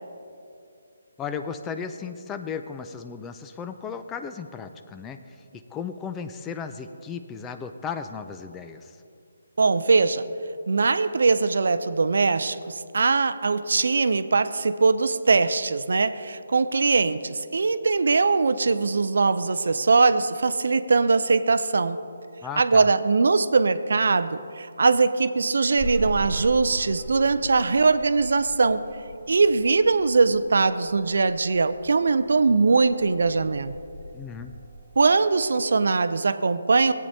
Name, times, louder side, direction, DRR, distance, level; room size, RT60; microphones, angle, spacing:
voice 1, 1.2-5.4 5.7-9.0 22.4-22.9 34.1-34.6, left 6 dB, 15° left, 8 dB, 0.4 m, -35 dB
voice 2, 9.6-10.2 10.7-22.0 22.6-28.8 29.3-33.7 35.0-36.9, right 4 dB, 65° right, 13 dB, 0.4 m, -21 dB
sound 1, 25.8-35.1, right 2 dB, 10° right, 1.3 m, -39 dB
17.5 x 8.5 x 2.7 m, 2.5 s
figure-of-eight pair, 150°, 0 cm